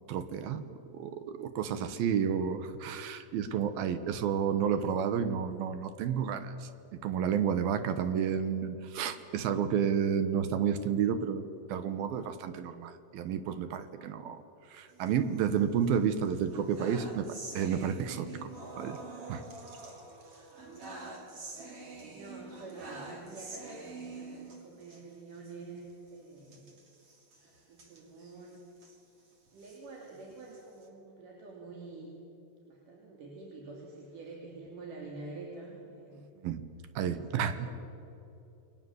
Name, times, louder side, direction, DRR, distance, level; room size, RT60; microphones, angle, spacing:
voice 1, 0.1-6.7 7.0-14.4 14.7-18.5 18.8-19.0 19.3-19.4 36.4-36.6 37.0-37.7, right 8 dB, 70° right, 10 dB, 2.7 m, -31 dB
sound 1, 14.9-15.8 16.2-25.0 25.4-25.5 25.8-25.9 26.4-29.0 29.5-30.9, right 3 dB, 35° right, 3.6 m, -46 dB
voice 2, 20.9-26.8 27.4-28.6 29.5-32.1 32.6-36.3 37.3-37.8, right 3 dB, 55° right, -1 dB, 4.2 m, -47 dB
29.5 x 21.5 x 7.9 m, 2.8 s
omnidirectional pair, 4.9 m